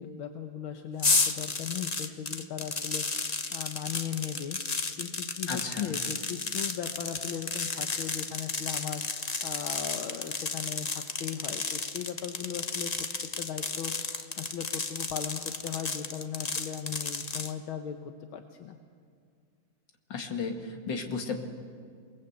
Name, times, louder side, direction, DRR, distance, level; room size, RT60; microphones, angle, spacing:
voice 1, 0.0-18.8, left 8 dB, 80° left, 5 dB, 1.8 m, -38 dB
sound 1, 1.0-17.5, left 4 dB, 40° left, 0.6 m, -33 dB
voice 2, 5.5-6.0 20.1-21.4, left 5 dB, 60° left, 3 dB, 2.7 m, -33 dB
28.5 x 20.0 x 8.1 m, 2.2 s
omnidirectional pair, 2.3 m